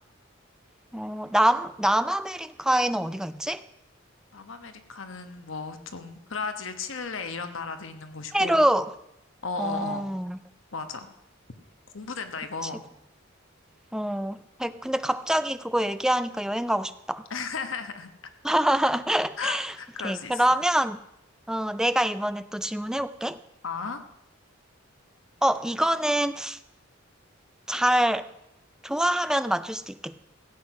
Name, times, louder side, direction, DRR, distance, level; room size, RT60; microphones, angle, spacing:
voice 1, 0.9-3.6 8.3-8.9 9.6-10.4 12.6-12.7 13.9-17.2 18.4-19.7 20.0-21.0 21.5-23.4 25.4-26.6 27.7-28.3 28.8-30.2, right 1 dB, 5° right, 12 dB, 0.4 m, -25 dB
voice 2, 4.3-8.6 9.4-10.1 10.7-11.1 11.9-12.8 17.3-18.1 19.4-20.4 23.6-24.0, left 4 dB, 70° left, 8 dB, 1.1 m, -35 dB
15.5 x 8.0 x 5.9 m, 0.82 s
head